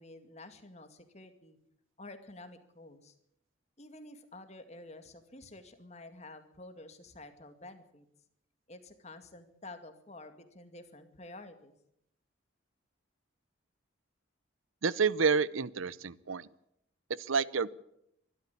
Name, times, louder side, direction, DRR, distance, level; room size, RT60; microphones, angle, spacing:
voice 1, 0.0-1.6 2.0-3.2 3.8-8.1 8.7-11.7, left 2 dB, 35° left, 8 dB, 2.2 m, -50 dB
voice 2, 14.8-16.5 17.2-17.7, right 5 dB, 80° right, 20 dB, 0.7 m, -29 dB
23.5 x 13.0 x 8.5 m, 0.76 s
head